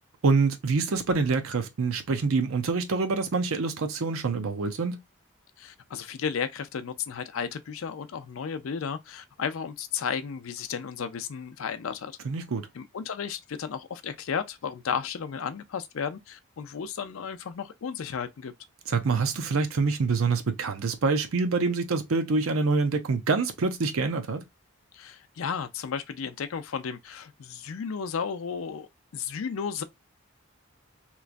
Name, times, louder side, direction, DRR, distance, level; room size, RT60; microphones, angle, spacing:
voice 1, 0.2-5.0 12.2-12.7 18.9-24.4, right 4 dB, 75° right, 0.6 m, -26 dB
voice 2, 5.6-12.1 12.7-18.5 24.9-29.8, left 6 dB, 75° left, 0.4 m, -33 dB
3.0 x 2.3 x 2.4 m
head